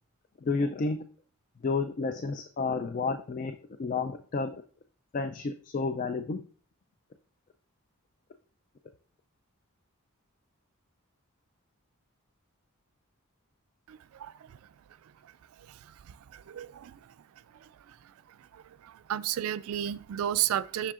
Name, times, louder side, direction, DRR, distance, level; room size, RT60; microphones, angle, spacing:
voice 1, 0.4-1.0 1.6-4.6 5.1-6.4, left 4 dB, 40° left, 0.3 m, -31 dB
voice 2, 13.9-14.6 15.7-15.8 16.1-17.0 17.6-17.7 18.5-20.9, right 11 dB, 70° right, 0.3 m, -33 dB
7.5 x 6.3 x 2.4 m
head